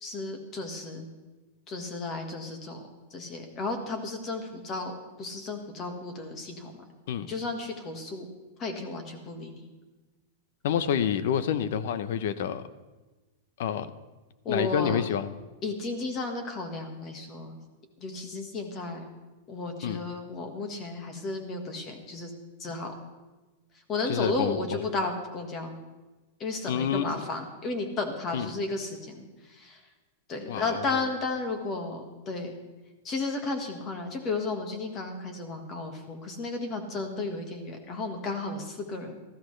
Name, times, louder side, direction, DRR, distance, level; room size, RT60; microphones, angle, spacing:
voice 1, 0.0-1.1 1.7-2.8 3.1-4.9 5.2-6.7 7.3-8.3 8.6-9.6 14.4-15.0 15.6-17.6 18.0-19.0 19.5-22.3 22.6-22.9 23.9-25.8 26.4-29.8 30.3-32.6 33.0-39.1, left 3 dB, 20° left, 5 dB, 1.6 m, -33 dB
voice 2, 10.6-12.6 13.6-13.9 14.5-15.3 19.8-20.0 24.0-24.8 26.7-27.2 28.3-28.5 30.5-31.0, left 8 dB, 55° left, 13 dB, 0.7 m, -28 dB
19.0 x 14.0 x 3.3 m, 1.2 s
supercardioid pair, 175°, 0 cm